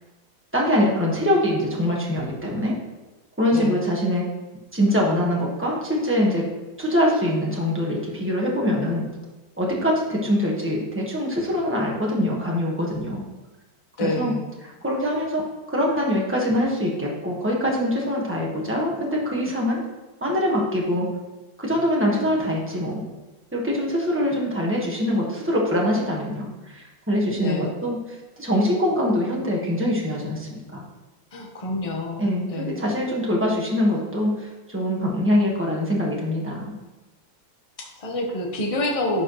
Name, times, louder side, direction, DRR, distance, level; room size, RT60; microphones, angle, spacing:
voice 1, 0.5-2.7 3.4-4.2 4.7-6.4 6.8-9.0 9.6-13.2 14.0-14.3 14.8-15.4 15.7-19.8 20.2-21.1 21.6-23.0 23.5-28.0 28.4-30.8 32.2-34.3 34.7-36.7, equal, 10° right, -4 dB, 1.2 m, -23 dB
voice 2, 14.0-14.5 27.4-27.7 31.3-32.9 37.8-39.2, left 2 dB, 25° left, 0 dB, 0.8 m, -28 dB
11.0 x 4.7 x 3.1 m, 1.1 s
omnidirectional pair, 2.1 m